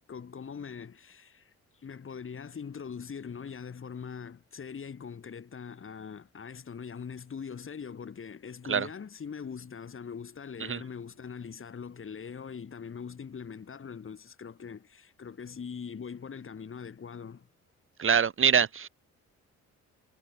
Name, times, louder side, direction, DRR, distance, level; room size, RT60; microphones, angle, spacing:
voice 1, 0.1-17.5, left 6 dB, 45° left, 7.3 m, -42 dB
voice 2, 18.0-18.9, right 7 dB, 45° right, 1.9 m, -24 dB
cardioid pair, 90°, 30 cm